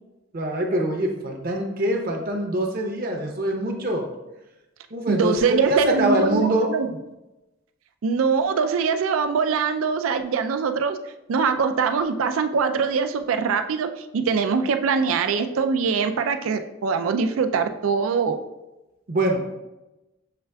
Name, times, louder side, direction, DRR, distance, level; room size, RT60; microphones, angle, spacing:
voice 1, 0.3-4.1 4.9-6.7 19.1-19.4, right 1 dB, 45° right, 2 dB, 0.7 m, -24 dB
voice 2, 5.1-6.9 8.0-11.0 11.3-18.4, right 5 dB, 90° right, 8 dB, 0.4 m, -23 dB
6.7 x 3.3 x 2.2 m, 0.99 s
head